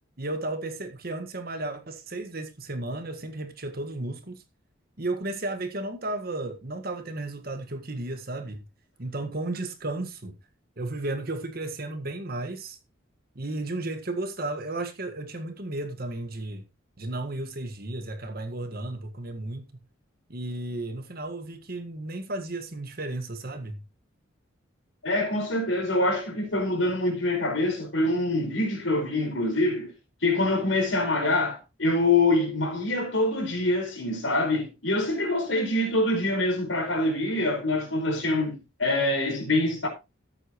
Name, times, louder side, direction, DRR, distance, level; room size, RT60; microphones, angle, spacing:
voice 1, 0.2-4.4 5.0-8.6 9.0-10.3 10.8-12.8 13.4-16.7 17.0-19.7 20.3-23.8, right 2 dB, 50° right, 1.6 m, -33 dB
voice 2, 25.0-29.9 30.2-39.9, left 2 dB, 80° left, 4.8 m, -25 dB
13.5 x 8.4 x 3.0 m
head